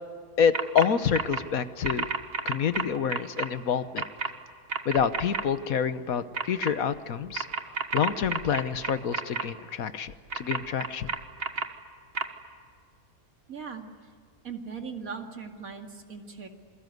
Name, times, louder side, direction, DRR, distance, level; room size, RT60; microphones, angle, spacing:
voice 1, 0.4-2.1 2.4-4.0 4.8-7.4 7.9-11.1, left 7 dB, 70° left, 12 dB, 1.5 m, -27 dB
sound 1, 0.5-0.9 1.1-1.4 1.8-3.5 4.0-4.3 4.7-5.4 6.3-6.7 7.3-9.4 10.3-11.6 12.2-12.3, right 4 dB, 45° right, 1.6 m, -30 dB
voice 2, 13.5-13.9 14.4-16.5, right 5 dB, 70° right, 4 dB, 2.8 m, -39 dB
27.5 x 23.0 x 9.4 m, 2.2 s
omnidirectional pair, 1.6 m